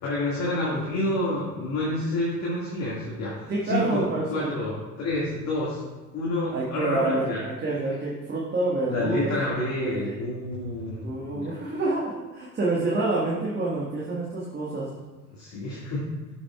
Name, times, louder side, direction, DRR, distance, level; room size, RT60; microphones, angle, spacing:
voice 1, 0.0-5.8 6.1-7.4 8.9-11.0 11.3-11.5 15.3-16.1, left 1 dB, 35° left, -5 dB, 2.0 m, -29 dB
voice 2, 3.5-4.6 6.5-10.2 11.0-14.9, right 2 dB, 20° right, -5 dB, 1.6 m, -28 dB
12.5 x 6.3 x 2.3 m, 1.2 s
figure-of-eight pair, 80°, 48 cm